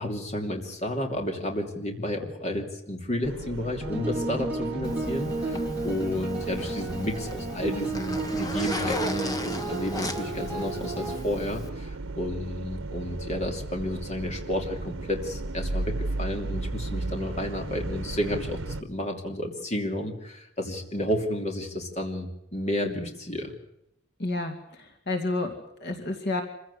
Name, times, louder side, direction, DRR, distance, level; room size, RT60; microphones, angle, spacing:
voice 1, 0.0-23.5, left 1 dB, 35° left, 3 dB, 2.9 m, -31 dB
sound 1, 3.2-18.8, right 2 dB, 85° right, 1.0 m, -36 dB
sound 2, 3.8-11.2, right 2 dB, 10° right, 4.7 m, -32 dB
Zipper (clothing), 4.8-11.7, left 1 dB, 20° left, 1.4 m, -37 dB
voice 2, 24.2-26.4, left 2 dB, 55° left, 4 dB, 2.5 m, -30 dB
25.5 x 16.0 x 8.2 m, 0.86 s
head